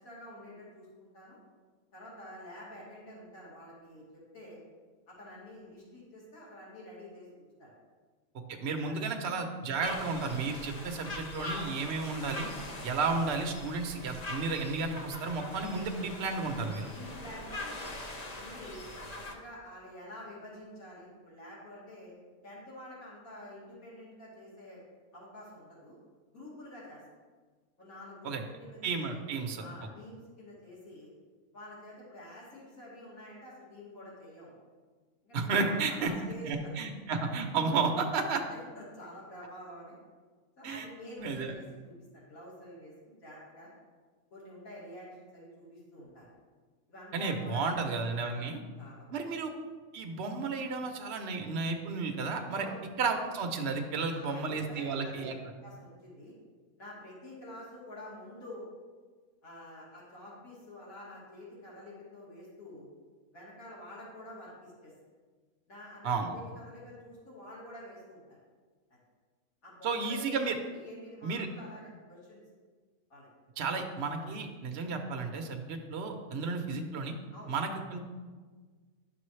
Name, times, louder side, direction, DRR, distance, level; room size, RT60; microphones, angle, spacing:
voice 1, 0.0-1.4 1.9-4.6 5.1-7.7 8.8-9.0 16.9-17.7 18.3-18.9 19.1-22.1 22.4-24.8 25.1-25.9 26.3-27.0 27.8-29.0 29.6-31.1 31.5-34.6 35.2-36.7 37.5-37.9 38.3-40.0 40.6-43.7 44.3-46.3 46.9-47.7 48.2-48.5 48.8-49.2 52.6-52.8 54.0-55.3 55.6-56.3 56.8-58.7 59.4-62.9 63.3-64.9 65.7-68.4 68.9-69.0 69.6-70.3 70.7-72.4 73.1-73.3 74.1-74.3 77.3-77.5, left 1 dB, 70° left, -7 dB, 3.0 m, -48 dB
voice 2, 8.5-12.5 12.8-16.9 28.2-28.4 28.8-29.7 35.3-36.1 36.4-38.4 40.6-40.9 41.2-41.5 47.1-48.6 49.1-49.5 49.9-52.7 53.0-55.4 66.0-66.3 69.8-70.5 71.2-71.5 73.6-77.1 77.5-78.0, right 4 dB, 55° right, 4 dB, 0.9 m, -32 dB
sound 1, 9.8-19.3, left 1 dB, 40° left, 0.6 m, -42 dB
11.0 x 6.0 x 3.2 m, 1.4 s
omnidirectional pair, 1.5 m